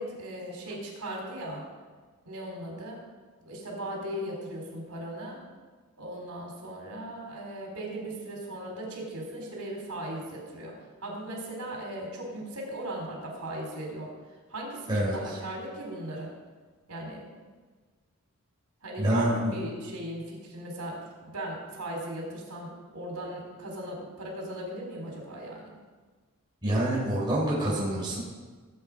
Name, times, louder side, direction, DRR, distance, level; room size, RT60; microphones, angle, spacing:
voice 1, 0.0-1.6 2.2-3.0 3.5-5.4 6.0-10.8 11.0-14.1 14.5-16.3 16.9-17.2 18.8-25.7, right 1 dB, 80° right, -1 dB, 4.1 m, -38 dB
voice 2, 19.0-19.5 26.6-28.2, right 1 dB, 20° right, -6 dB, 3.9 m, -26 dB
18.0 x 8.6 x 5.0 m, 1.4 s
head